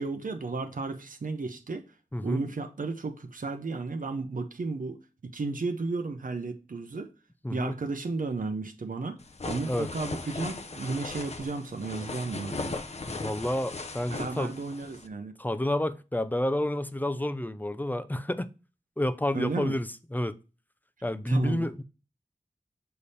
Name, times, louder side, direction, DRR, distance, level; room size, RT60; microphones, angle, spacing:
voice 1, 0.0-1.8 2.2-5.0 5.3-7.1 7.5-9.2 9.4-12.7 14.1-15.3 19.3-19.7 21.3-21.7, right 3 dB, 75° right, 0.7 m, -33 dB
voice 2, 2.1-2.4 7.4-7.8 9.7-9.9 13.1-14.5 15.4-18.5 19.0-20.4 21.0-21.8, left 1 dB, 10° left, 0.5 m, -30 dB
sound 1, 9.2-15.1, left 3 dB, 50° left, 0.7 m, -38 dB
6.8 x 3.4 x 4.1 m
wide cardioid pair, 70°, 14 cm